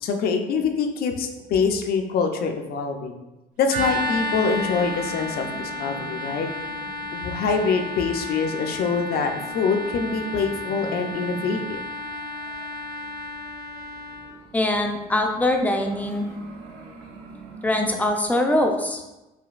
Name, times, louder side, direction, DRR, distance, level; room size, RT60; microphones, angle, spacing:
voice 1, 0.0-3.2 3.6-6.5 7.1-11.8, left 5 dB, 65° left, 5 dB, 0.5 m, -25 dB
sound 1, 3.6-18.2, right 3 dB, 75° right, 0.7 m, -43 dB
sound 2, 3.7-14.3, left 1 dB, 55° right, 1.2 m, -32 dB
voice 2, 14.5-16.3 17.6-19.1, left 1 dB, 10° left, 3 dB, 0.5 m, -23 dB
5.0 x 2.7 x 2.4 m, 1.0 s
cardioid pair, 110°, 17 cm